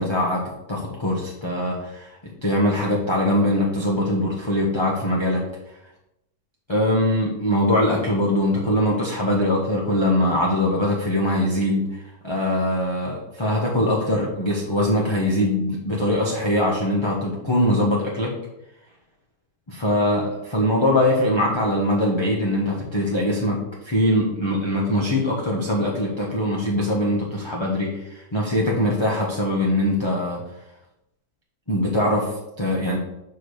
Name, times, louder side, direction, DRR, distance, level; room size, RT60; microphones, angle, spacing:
voice 1, 0.0-5.4 6.7-18.3 19.7-23.6 23.8-30.4 31.7-33.0, left 1 dB, 20° left, -4 dB, 1.0 m, -22 dB
5.0 x 4.8 x 6.3 m, 0.88 s
omnidirectional pair, 1.8 m